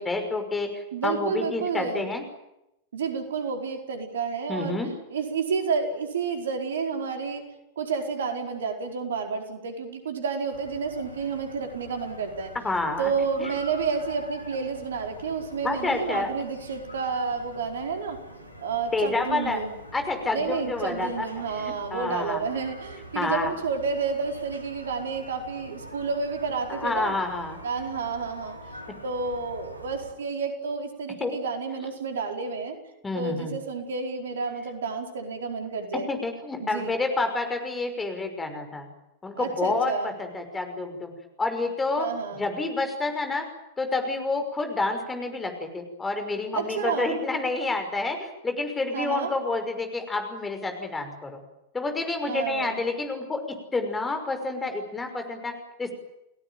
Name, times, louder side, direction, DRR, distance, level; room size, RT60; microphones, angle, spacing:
voice 1, 0.0-2.2 4.5-4.9 12.6-13.1 13.4-13.5 15.6-16.3 18.9-19.6 19.9-21.3 21.5-22.4 23.1-23.5 26.7-27.6 31.2-31.3 33.0-33.5 35.9-38.9 39.2-41.1 41.4-42.1 42.3-43.5 43.8-51.4 51.7-55.9, left 3 dB, 15° left, 6 dB, 5.7 m, -29 dB
voice 2, 0.9-2.1 2.9-4.8 5.1-7.4 7.8-12.5 13.0-18.2 18.6-19.7 20.3-27.1 27.6-28.6 29.0-32.8 33.1-36.1 36.6-37.0 39.3-40.1 42.0-42.4 46.5-47.2 48.9-49.3 52.3-52.8, right 5 dB, 65° right, 4 dB, 4.7 m, -30 dB
sound 1, 10.5-30.1, equal, 85° left, 3.6 m, -45 dB
30.0 x 18.5 x 9.1 m, 0.87 s
figure-of-eight pair, 90°, 0 cm